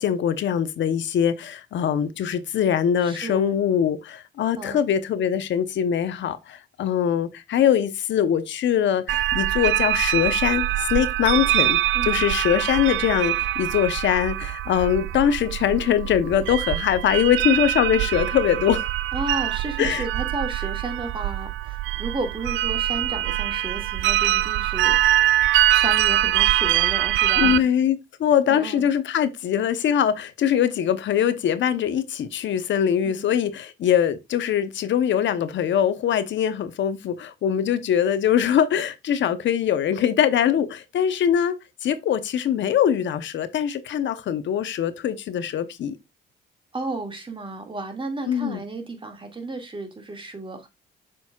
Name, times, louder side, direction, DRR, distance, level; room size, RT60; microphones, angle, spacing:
voice 1, 0.0-11.8 12.0-18.9 19.8-20.1 27.4-41.5 41.8-46.0 48.3-48.6, left 9 dB, 70° left, 0.8 m, -22 dB
voice 2, 3.0-3.5 4.6-4.8 11.9-12.2 19.1-25.3 25.7-27.7 28.5-28.8 33.0-33.3 46.7-50.7, right 2 dB, 25° right, 2.0 m, -33 dB
sound 1, 9.1-27.6, right 14 dB, 75° right, 0.4 m, -23 dB
7.1 x 6.2 x 2.3 m
cardioid pair, 90°, 20 cm